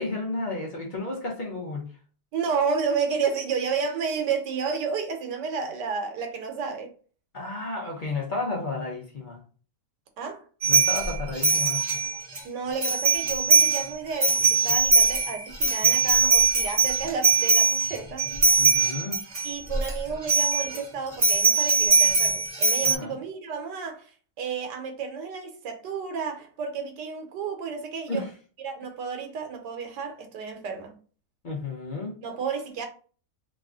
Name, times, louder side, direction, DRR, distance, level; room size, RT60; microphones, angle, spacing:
voice 1, 0.0-1.9 7.3-9.4 10.7-11.8 18.6-19.3 22.8-23.2 28.1-28.3 31.4-32.2, left 3 dB, 50° left, 0.5 m, -32 dB
voice 2, 2.3-6.9 10.2-10.5 12.4-18.2 19.4-28.2 28.6-31.0 32.2-32.9, right 5 dB, 85° right, 1.4 m, -31 dB
sound 1, 10.6-12.4 12.8-13.8 14.1-19.9 20.2-20.8 21.2-22.9, right 4 dB, 35° right, 0.5 m, -21 dB
3.0 x 2.4 x 3.5 m
omnidirectional pair, 1.8 m